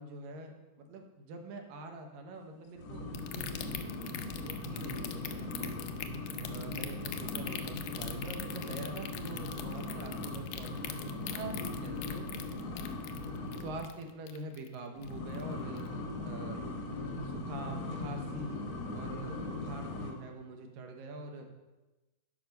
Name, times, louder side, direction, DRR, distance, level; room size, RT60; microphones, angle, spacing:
voice 1, 0.0-5.8 6.5-12.3 13.6-15.8 16.2-16.6 17.0-18.6 18.9-21.5, right 2 dB, 75° right, 4 dB, 2.7 m, -45 dB
sound 1, 2.8-13.9 15.0-20.1, left 2 dB, 60° left, 1.4 m, -39 dB
sound 2, 3.1-14.8 15.0-15.4 15.8-15.9, left 12 dB, 80° left, 2.0 m, -41 dB
11.5 x 5.5 x 5.3 m, 1.1 s
omnidirectional pair, 4.1 m